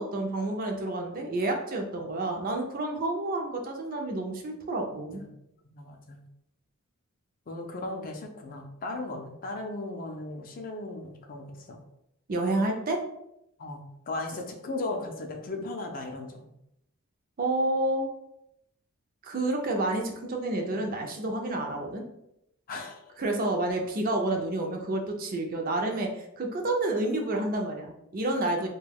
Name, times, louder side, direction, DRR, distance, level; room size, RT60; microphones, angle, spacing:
voice 1, 0.0-5.2 12.3-13.0 17.4-18.1 19.2-22.0 23.2-28.7, right 2 dB, 40° right, 2 dB, 0.4 m, -29 dB
voice 2, 4.9-5.3 5.7-6.2 7.5-11.8 13.6-16.5 22.7-23.2, left 2 dB, 40° left, 3 dB, 0.4 m, -37 dB
2.3 x 2.2 x 3.3 m, 0.80 s
head